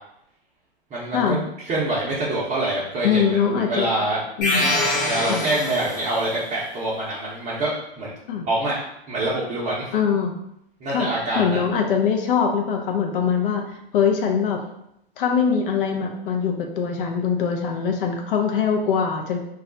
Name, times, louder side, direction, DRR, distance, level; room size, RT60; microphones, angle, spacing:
voice 1, 0.9-1.4 1.7-3.4 3.6-4.2 5.0-8.1 8.4-8.8 9.1-9.9 10.8-11.6, right 2 dB, 25° right, -7 dB, 0.6 m, -25 dB
voice 2, 3.0-3.9 4.4-4.7 5.3-5.4 8.3-8.5 9.9-10.3 10.9-11.1 11.4-14.6 15.2-19.5, left 6 dB, 60° left, 3 dB, 0.5 m, -22 dB
sound 1, 4.4-6.3, left 1 dB, 25° left, 0.9 m, -24 dB
2.3 x 2.0 x 3.7 m, 0.78 s
hypercardioid pair, 115°, 31 cm